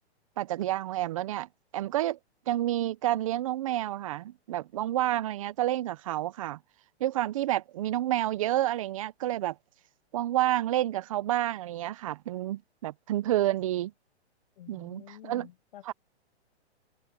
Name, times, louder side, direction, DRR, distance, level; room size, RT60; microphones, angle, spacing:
voice 1, 0.4-1.5 1.7-2.2 2.5-6.6 7.0-9.5 10.1-13.9 14.7-15.5 15.8-15.9, right 14 dB, 30° right, 0.5 m, -29 dB
voice 2, 14.6-15.8, left 13 dB, 50° left, 7.0 m, -49 dB
hypercardioid pair, 160°, 33 cm